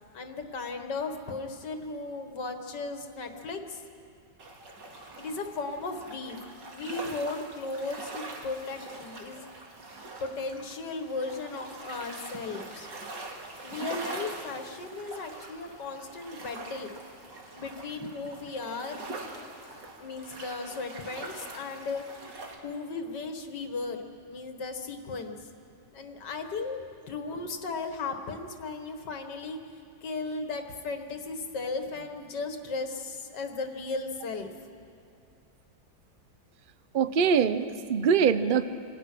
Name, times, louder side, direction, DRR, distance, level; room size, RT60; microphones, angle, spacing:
voice 1, 0.1-3.8 5.0-6.4 6.7-9.4 10.2-12.9 13.6-16.9 17.6-19.0 20.0-22.0 22.6-25.5 25.9-26.8 27.1-29.6 30.0-34.5, left 3 dB, 65° left, 5 dB, 2.2 m, -36 dB
sound 1, 4.4-22.6, right 2 dB, 70° right, 2.8 m, -43 dB
voice 2, 36.9-38.6, right 6 dB, 55° right, 12 dB, 0.5 m, -23 dB
27.0 x 24.5 x 6.2 m, 2.5 s
omnidirectional pair, 2.0 m